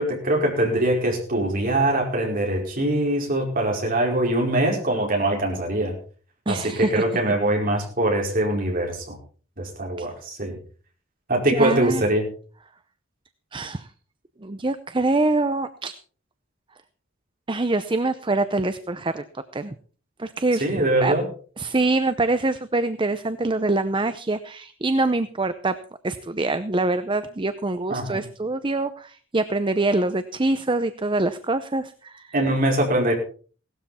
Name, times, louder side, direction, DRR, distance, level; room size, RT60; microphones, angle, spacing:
voice 1, 0.0-5.9 6.5-9.2 9.6-10.6 11.3-12.3 20.6-21.3 27.9-28.2 32.3-33.2, right 1 dB, 40° right, 0 dB, 4.9 m, -23 dB
voice 2, 6.5-7.0 10.0-10.1 11.5-12.0 13.5-13.9 14.4-15.9 17.5-19.2 19.5-19.7 20.2-20.7 21.0-21.1 21.6-25.7 26.0-32.3, right 2 dB, 25° right, 11 dB, 0.6 m, -24 dB
17.5 x 12.5 x 4.3 m, 0.42 s
head